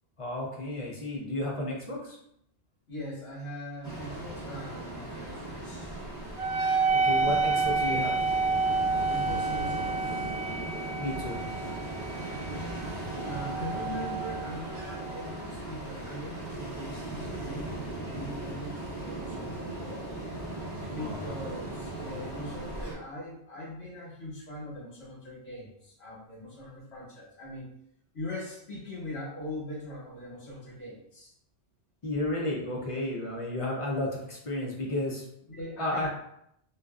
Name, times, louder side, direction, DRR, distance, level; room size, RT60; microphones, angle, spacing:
voice 1, 0.2-2.2 6.9-8.2 11.0-11.4 20.9-21.5 32.0-35.2 35.8-36.1, left 1 dB, 45° left, -3 dB, 0.4 m, -32 dB
voice 2, 2.9-6.0 9.0-10.3 13.2-20.1 20.8-27.6 28.1-31.3 35.5-36.1, left 1 dB, 70° left, -5 dB, 1.3 m, -41 dB
Ocean, 3.8-22.9, right 2 dB, 25° left, 0.9 m, -38 dB
Wind instrument woodwind instrument, 6.4-15.3, right 4 dB, 70° right, 0.9 m, -30 dB
2.6 x 2.3 x 2.3 m, 0.74 s
omnidirectional pair, 1.1 m